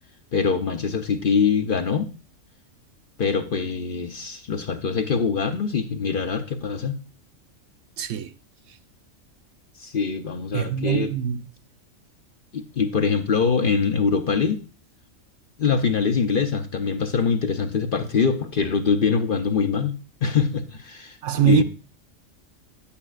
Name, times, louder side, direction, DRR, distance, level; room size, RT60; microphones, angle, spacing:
voice 1, 0.3-2.1 3.2-7.0 9.8-11.1 12.5-14.6 15.6-19.9 20.2-21.6, left 5 dB, 50° left, 0.8 m, -23 dB
voice 2, 8.0-8.3 10.5-11.4 21.2-21.6, right 13 dB, 70° right, 0.9 m, -23 dB
10.0 x 8.5 x 2.4 m
omnidirectional pair, 1.4 m